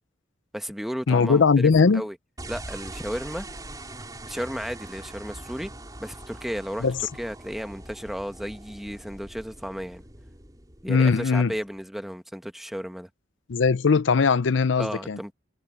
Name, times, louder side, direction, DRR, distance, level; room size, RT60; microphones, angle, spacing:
voice 1, 0.5-2.2 2.5-3.5 4.3-5.7 6.0-6.9 7.2-10.0 10.8-13.1 14.8-15.3, equal, ahead, 1.1 m, -34 dB
voice 2, 1.1-2.0 6.8-7.0 10.9-11.5 13.5-15.2, left 5 dB, 75° left, 0.5 m, -20 dB
sound 1, 2.4-11.8, right 1 dB, 20° right, 4.8 m, -42 dB
head